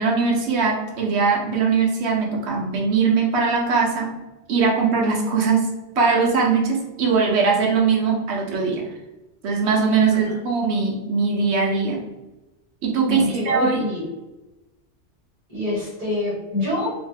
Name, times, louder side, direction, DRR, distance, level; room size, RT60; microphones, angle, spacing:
voice 1, 0.0-4.1 4.5-5.7 6.0-8.8 9.4-12.0 12.8-13.8, right 5 dB, 70° right, -1 dB, 1.0 m, -21 dB
voice 2, 13.1-14.1 15.5-16.9, left 1 dB, 30° right, -6 dB, 1.5 m, -26 dB
3.0 x 2.1 x 3.3 m, 1.0 s
omnidirectional pair, 1.2 m